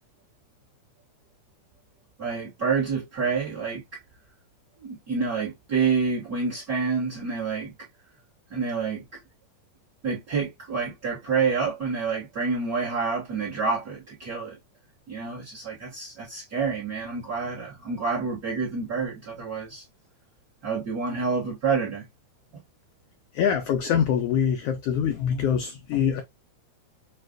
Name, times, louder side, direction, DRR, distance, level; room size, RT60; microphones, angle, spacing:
voice 1, 2.2-4.0 4.8-7.7 8.5-9.0 10.0-14.6 15.1-19.8 20.6-22.1, right 5 dB, 50° right, 1.2 m, -28 dB
voice 2, 23.3-26.2, left 8 dB, 85° left, 1.3 m, -24 dB
6.3 x 2.3 x 2.4 m
omnidirectional pair, 3.4 m